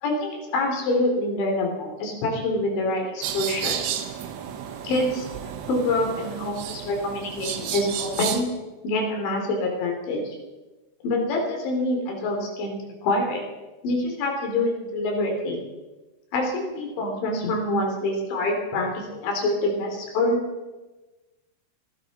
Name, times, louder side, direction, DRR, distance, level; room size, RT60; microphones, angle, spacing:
voice 1, 0.0-3.8 4.8-5.3 5.7-8.5 8.8-10.3 11.0-13.4 13.8-15.6 16.3-20.4, left 2 dB, 80° left, 1 dB, 5.2 m, -26 dB
sound 1, 3.2-8.4, right 9 dB, 80° right, 3.4 m, -32 dB
25.0 x 13.0 x 4.1 m, 1.2 s
omnidirectional pair, 5.2 m